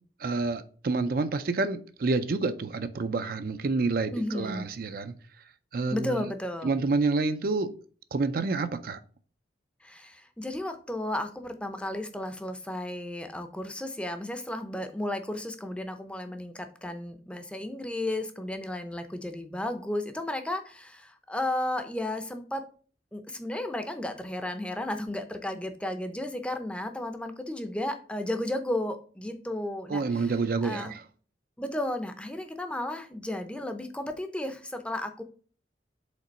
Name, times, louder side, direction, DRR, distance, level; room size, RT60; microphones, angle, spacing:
voice 1, 0.2-5.2 5.7-6.3 6.6-7.8 8.1-9.0 29.9-31.0, right 3 dB, 55° right, 0.4 m, -28 dB
voice 2, 4.1-4.7 5.9-6.7 9.8-22.6 23.1-30.3 30.6-30.9 31.6-35.2, left 1 dB, 5° left, 0.5 m, -33 dB
5.2 x 3.8 x 5.1 m
head